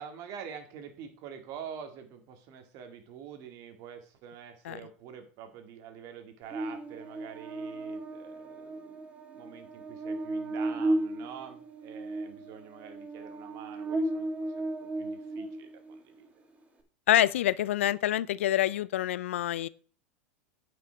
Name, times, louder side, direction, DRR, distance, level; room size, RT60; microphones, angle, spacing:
voice 1, 0.0-9.0 9.3-14.3 14.6-16.3, right 8 dB, 55° right, 2.2 m, -46 dB
Buzz, 6.5-16.0, right 2 dB, 20° right, 2.1 m, -35 dB
voice 2, 17.1-19.7, left 13 dB, 80° left, 0.4 m, -26 dB
9.4 x 6.2 x 4.6 m
hypercardioid pair, 100°, 7 cm